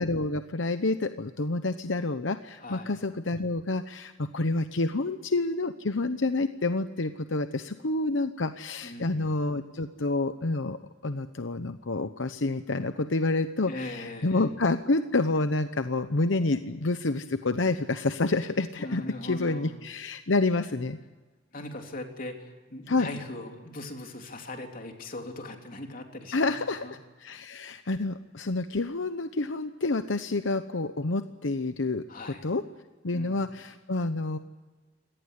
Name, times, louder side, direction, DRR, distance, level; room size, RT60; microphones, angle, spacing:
voice 1, 0.0-21.0 22.9-23.1 26.3-26.8 27.2-32.6 33.0-34.4, left 2 dB, 85° left, 9 dB, 1.0 m, -28 dB
voice 2, 2.6-2.9 8.8-9.2 13.6-14.5 18.8-19.8 21.5-26.9 32.1-32.4 33.1-33.4, left 2 dB, 50° left, 3 dB, 3.4 m, -40 dB
25.0 x 18.5 x 8.3 m, 1.3 s
head